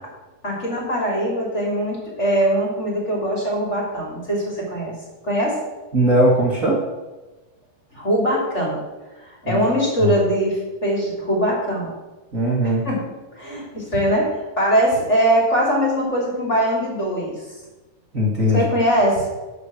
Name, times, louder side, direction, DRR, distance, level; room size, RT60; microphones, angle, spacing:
voice 1, 0.4-4.9 5.2-5.6 7.9-8.8 9.2-11.9 12.6-13.0 13.4-17.4 18.5-19.3, equal, 20° left, -3 dB, 2.5 m, -21 dB
voice 2, 5.9-6.8 9.4-9.6 10.0-10.1 12.3-12.8 18.1-18.7, equal, 85° right, -4 dB, 0.7 m, -19 dB
12.0 x 5.0 x 7.3 m, 1.2 s
omnidirectional pair, 4.5 m